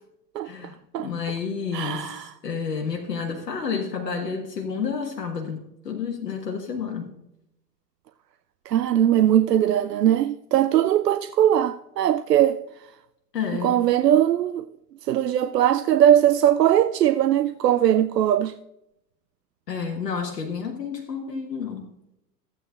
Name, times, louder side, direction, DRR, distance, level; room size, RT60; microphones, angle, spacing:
voice 1, 0.4-7.1 13.3-13.8 19.7-21.9, left 6 dB, 75° left, 1.5 m, -30 dB
voice 2, 1.7-2.2 8.7-12.6 13.6-14.6 15.1-18.5, right 11 dB, 75° right, 0.6 m, -20 dB
14.5 x 8.9 x 2.4 m
figure-of-eight pair, 95°, 49 cm